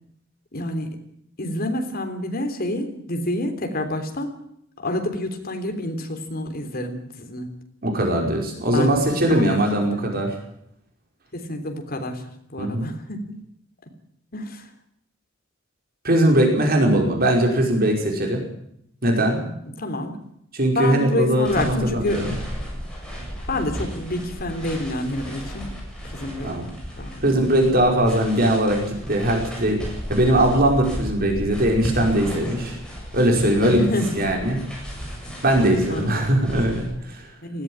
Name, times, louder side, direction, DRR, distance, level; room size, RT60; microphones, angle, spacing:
voice 1, 0.5-0.9 1.4-4.3 4.8-7.5 8.7-9.0 9.3-9.6 11.3-12.2 12.5-13.4 14.3-14.6 19.4-20.2 20.7-22.3 23.5-25.7 26.0-26.5 27.0-27.3 33.6-34.3 35.9-36.2 37.4-37.6, left 1 dB, 45° left, 5 dB, 3.5 m, -28 dB
voice 2, 7.8-10.3 12.6-12.9 16.0-18.4 19.0-19.4 20.5-22.3 26.4-26.7 27.2-29.8 30.1-32.8 33.1-33.9 34.2-34.6 35.4-37.3, right 1 dB, 45° right, 1 dB, 5.2 m, -20 dB
sound 1, 21.4-36.9, equal, 5° left, 7.8 m, -34 dB
19.5 x 15.0 x 8.8 m, 0.73 s
head